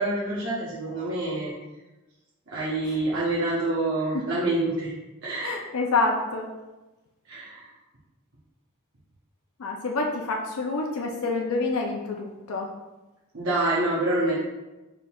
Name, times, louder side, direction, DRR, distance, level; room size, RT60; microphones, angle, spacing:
voice 1, 0.0-1.5 2.5-4.9 5.2-5.5 7.2-7.7 13.3-14.3, right 2 dB, 60° right, -8 dB, 0.9 m, -27 dB
voice 2, 5.4-6.5 9.6-12.7, left 3 dB, 85° left, 0 dB, 0.5 m, -27 dB
4.3 x 3.6 x 2.4 m, 1.1 s
head